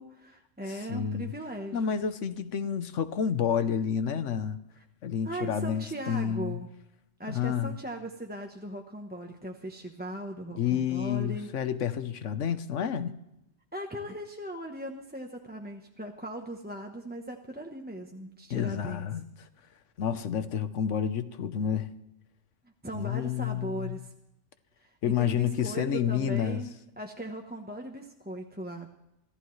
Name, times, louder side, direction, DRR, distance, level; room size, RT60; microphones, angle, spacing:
voice 1, 0.0-1.8 5.2-6.7 7.2-11.5 13.7-19.1 22.8-24.1 24.8-28.9, right 1 dB, 10° right, 0.8 m, -39 dB
voice 2, 0.7-1.3 1.7-4.6 5.0-6.6 7.3-7.8 10.6-13.2 18.5-19.2 20.0-21.9 22.9-24.0 25.0-26.6, left 8 dB, 70° left, 1.2 m, -29 dB
25.0 x 14.5 x 3.2 m
omnidirectional pair, 1.3 m